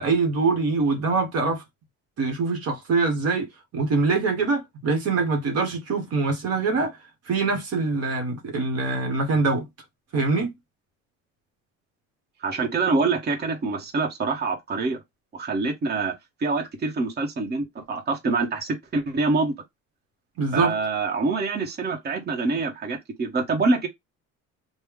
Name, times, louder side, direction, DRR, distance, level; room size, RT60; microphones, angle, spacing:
voice 1, 0.0-1.6 2.2-3.5 3.7-7.0 7.3-9.7 10.1-10.5 20.4-20.8, right 4 dB, 50° right, 1.1 m, -24 dB
voice 2, 12.4-15.0 15.3-16.1 16.4-19.5 20.5-23.9, right 3 dB, 30° right, 1.1 m, -25 dB
3.2 x 2.2 x 3.5 m
cardioid pair, 125°, 31 cm